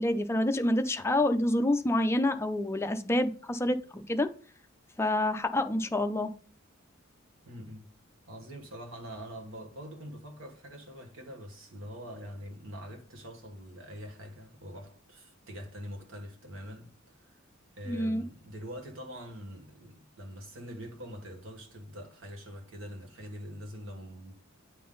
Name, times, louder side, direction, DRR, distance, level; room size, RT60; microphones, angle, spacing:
voice 1, 0.0-4.3 5.0-6.3 17.9-18.2, left 1 dB, 15° left, 0.4 m, -27 dB
voice 2, 7.4-7.9 8.3-16.9 17.2-17.3 17.8-24.3, equal, 75° right, 1.5 m, -44 dB
9.3 x 3.8 x 3.9 m
head